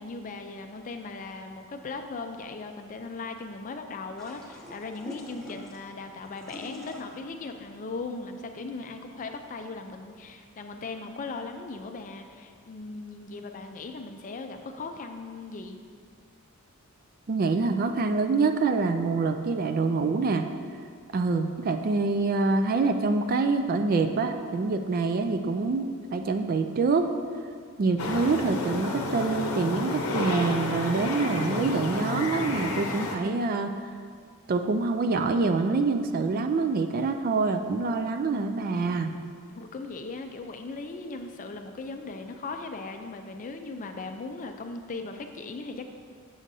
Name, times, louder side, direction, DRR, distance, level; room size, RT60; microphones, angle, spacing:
voice 1, 0.0-15.8 39.5-45.9, left 3 dB, 35° left, 5 dB, 0.4 m, -38 dB
sound 1, 4.2-9.4, equal, ahead, 1.1 m, -45 dB
voice 2, 17.3-20.5 21.1-27.1 27.8-33.7 34.5-39.1, right 3 dB, 45° right, 7 dB, 0.3 m, -26 dB
sound 2, 28.0-33.2, left 2 dB, 80° left, 0.7 m, -31 dB
7.4 x 6.3 x 2.7 m, 2.1 s
head